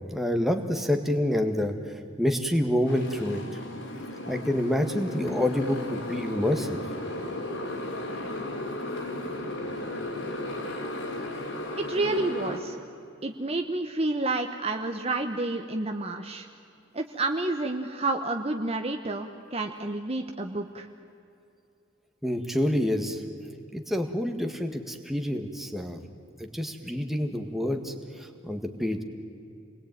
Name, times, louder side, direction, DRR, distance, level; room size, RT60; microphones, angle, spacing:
voice 1, 0.1-1.8 2.2-3.6 4.3-6.8 22.2-23.2 23.7-26.0 26.4-29.0, left 1 dB, ahead, 4 dB, 1.8 m, -27 dB
Motorcycle, 2.9-12.6, left 1 dB, 70° left, 4.3 m, -35 dB
voice 2, 11.8-12.8 13.2-16.5 16.9-20.9, right 2 dB, 30° right, 5 dB, 1.0 m, -29 dB
28.5 x 21.0 x 9.3 m, 2.7 s
head